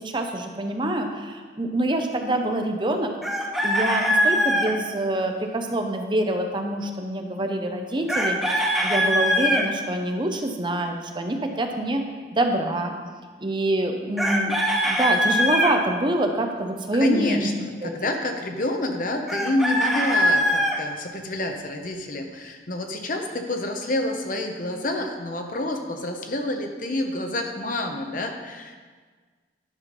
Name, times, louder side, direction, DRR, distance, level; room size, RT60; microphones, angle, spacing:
voice 1, 0.0-3.1 3.6-8.4 8.8-12.0 12.3-13.0 13.4-14.6 14.8-17.5 17.8-18.0, right 1 dB, 25° right, 4 dB, 0.7 m, -25 dB
Chicken rooster, 3.2-4.7 8.1-9.6 14.2-15.7 19.3-20.8, equal, ahead, 0.9 m, -22 dB
voice 2, 16.9-28.8, left 1 dB, 50° left, 4 dB, 0.9 m, -28 dB
10.5 x 5.7 x 5.2 m, 1.5 s
head